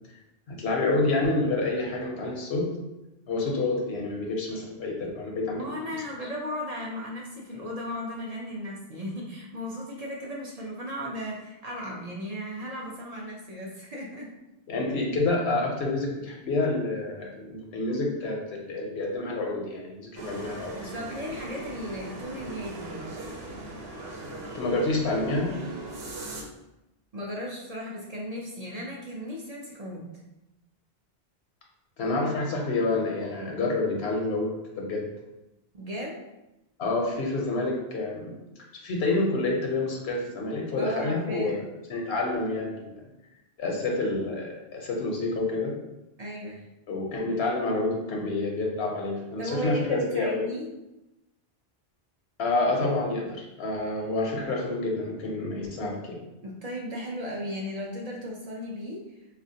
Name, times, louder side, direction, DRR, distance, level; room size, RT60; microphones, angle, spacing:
voice 1, 0.5-2.7 3.3-5.6 14.7-20.8 24.5-25.6 32.0-35.1 36.8-38.3 38.8-41.6 41.9-43.1 43.6-45.7 46.9-50.4 52.4-56.2, left 2 dB, 80° left, -1 dB, 0.9 m, -28 dB
voice 2, 5.6-14.3 20.8-23.1 27.1-30.1 35.7-36.2 40.8-41.7 46.2-46.6 49.4-50.7 56.4-59.0, equal, 45° right, -3 dB, 0.6 m, -36 dB
sound 1, 20.1-26.4, right 2 dB, 75° right, 0.9 m, -39 dB
4.1 x 2.4 x 2.7 m, 0.95 s
omnidirectional pair, 1.0 m